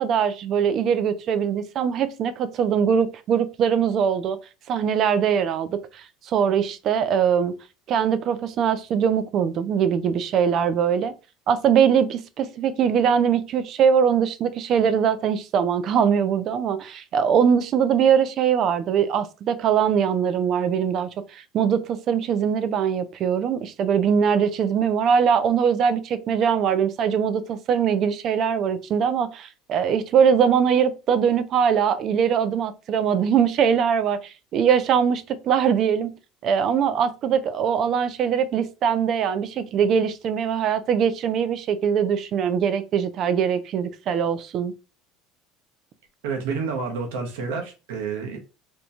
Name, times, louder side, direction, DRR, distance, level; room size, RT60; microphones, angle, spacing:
voice 1, 0.0-4.4 4.7-5.8 6.3-7.5 7.9-11.1 11.5-36.1 36.4-44.7, right 7 dB, 50° right, 0.4 m, -22 dB
voice 2, 46.2-48.4, right 5 dB, 80° right, 1.0 m, -29 dB
2.9 x 2.2 x 4.1 m
supercardioid pair, 105°, 0 cm